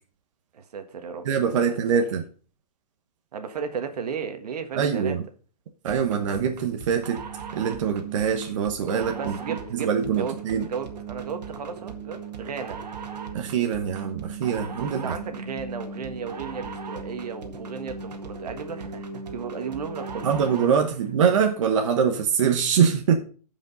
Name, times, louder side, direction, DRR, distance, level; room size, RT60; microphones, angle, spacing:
voice 1, 0.5-1.3 1.6-1.8 3.3-5.2 9.2-10.3 10.6-12.8 15.0-20.3, right 6 dB, 75° right, 1.5 m, -34 dB
voice 2, 1.2-2.2 4.7-5.2 5.8-7.2 7.5-10.7 13.3-15.2 20.2-23.2, right 7 dB, 50° right, 1.1 m, -24 dB
sound 1, 5.9-20.8, right 5 dB, 90° right, 1.9 m, -37 dB
15.5 x 5.2 x 4.0 m
hypercardioid pair, 165°, 21 cm